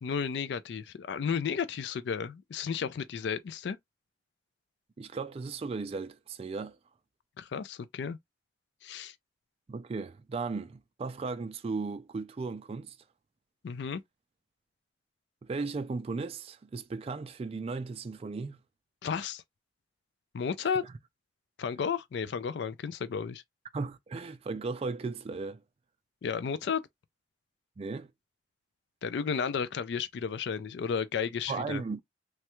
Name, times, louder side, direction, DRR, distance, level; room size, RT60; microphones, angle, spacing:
voice 1, 0.0-3.8 7.4-8.2 8.8-9.1 13.6-14.0 19.0-19.4 20.3-20.8 21.6-23.4 26.2-26.8 29.0-31.8, left 6 dB, 70° left, 0.4 m, -33 dB
voice 2, 5.0-6.8 9.7-13.0 15.4-18.6 23.7-25.6 27.8-28.1 31.5-32.0, right 4 dB, 35° right, 0.3 m, -36 dB
3.2 x 2.2 x 2.9 m
head